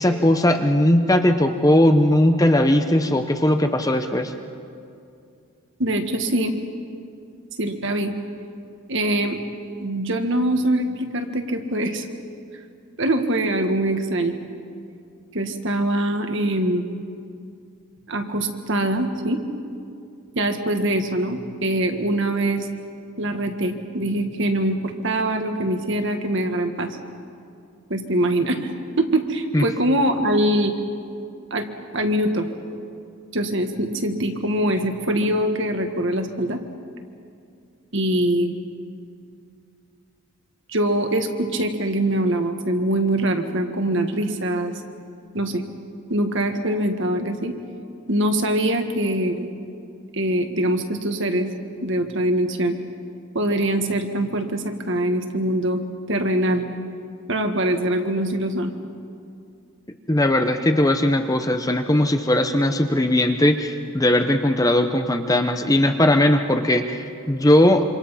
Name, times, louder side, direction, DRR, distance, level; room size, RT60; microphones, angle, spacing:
voice 1, 0.0-4.3 29.5-29.6 60.1-67.8, left 1 dB, 15° left, 6 dB, 0.9 m, -19 dB
voice 2, 5.8-6.5 7.6-8.1 8.9-9.4 9.8-12.1 13.0-14.4 15.3-16.8 18.1-19.4 20.3-22.7 23.2-27.0 27.9-30.7 31.5-32.5 33.3-36.6 37.9-38.5 40.7-44.8 45.3-45.6 46.1-47.5 48.1-49.5 50.1-51.5 51.8-52.8 53.3-55.8 56.1-56.6 57.3-58.7, right 1 dB, 55° right, 5 dB, 1.7 m, -23 dB
27.0 x 26.0 x 5.7 m, 2.5 s
head